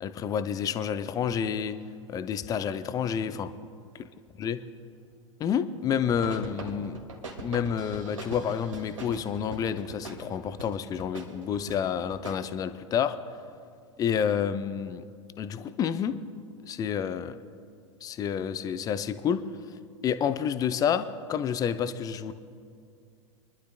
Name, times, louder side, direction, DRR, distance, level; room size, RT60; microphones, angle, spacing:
voice 1, 0.0-1.8 2.1-3.5 4.4-4.6 5.4-7.0 7.4-13.2 14.0-15.1 15.4-16.2 16.7-17.4 18.0-19.4 20.0-22.3, left 8 dB, 20° left, 12 dB, 0.5 m, -29 dB
sound 1, 6.1-12.4, right 2 dB, 75° right, 2.0 m, -42 dB
28.0 x 11.5 x 2.2 m, 2.3 s
figure-of-eight pair, 90°, 17 cm